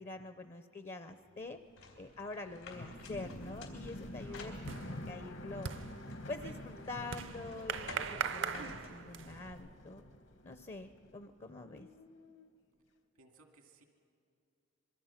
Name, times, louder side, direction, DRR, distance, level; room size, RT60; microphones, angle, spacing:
voice 1, 0.0-1.6 2.0-4.5 4.8-5.7 6.3-10.0 10.4-11.9, left 2 dB, 30° left, 9 dB, 0.6 m, -46 dB
sound 1, 1.3-11.4 11.6-12.5, left 1 dB, 55° left, 1.0 m, -49 dB
sound 2, 1.8-5.1 5.6-9.5, left 3 dB, 90° left, 4.1 m, -53 dB
sound 3, 3.0-3.4 3.7-9.5, right 6 dB, 55° right, 0.5 m, -41 dB
voice 2, 4.2-4.6 11.4-11.8 13.2-13.8, right 3 dB, 90° right, 4 dB, 2.2 m, -62 dB
25.5 x 23.0 x 5.8 m, 2.4 s
head